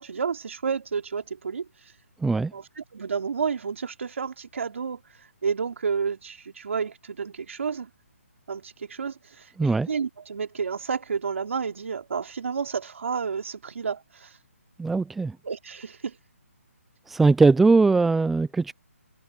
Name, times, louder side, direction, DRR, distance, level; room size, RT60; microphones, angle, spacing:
voice 1, 0.0-1.7 2.5-5.0 5.4-7.9 8.5-9.2 9.9-14.3 15.4-16.1, right 6 dB, 60° right, 3.6 m, -30 dB
voice 2, 2.2-2.5 9.6-9.9 14.8-15.4 17.1-18.7, right 3 dB, ahead, 0.3 m, -20 dB
hypercardioid pair, 170°, 8 cm